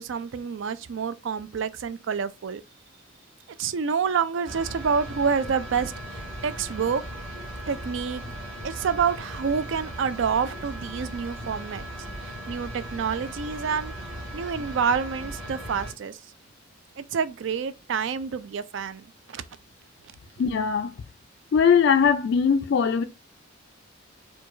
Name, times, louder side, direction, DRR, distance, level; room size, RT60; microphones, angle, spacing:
voice 1, 0.0-2.6 3.5-7.0 7.7-8.2 8.6-11.9 12.2-13.9 14.3-16.2 17.0-19.4, right 6 dB, 65° right, 0.4 m, -28 dB
sound 1, 4.5-15.9, right 1 dB, 25° right, 1.5 m, -38 dB
voice 2, 20.4-20.9 21.5-23.0, left 6 dB, 60° left, 0.3 m, -20 dB
4.5 x 2.3 x 2.5 m
head